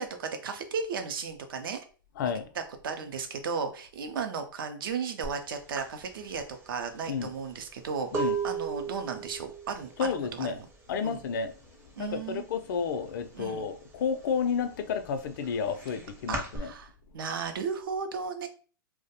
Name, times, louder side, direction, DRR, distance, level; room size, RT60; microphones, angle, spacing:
voice 1, 0.0-1.8 2.2-2.3 2.8-10.7 11.0-11.2 12.0-12.4 13.3-13.7 16.3-18.5, right 5 dB, 75° right, 0.5 m, -35 dB
voice 2, 2.2-2.5 7.1-7.3 8.1-8.4 10.0-10.6 10.9-11.6 12.0-16.7, left 6 dB, 60° left, 0.4 m, -31 dB
sound 1, 5.2-5.4 5.7-11.4 11.7-12.2 12.5-13.6 14.0-16.6, right 5 dB, 20° right, 0.5 m, -36 dB
2.3 x 2.1 x 2.8 m
hypercardioid pair, 135°, 12 cm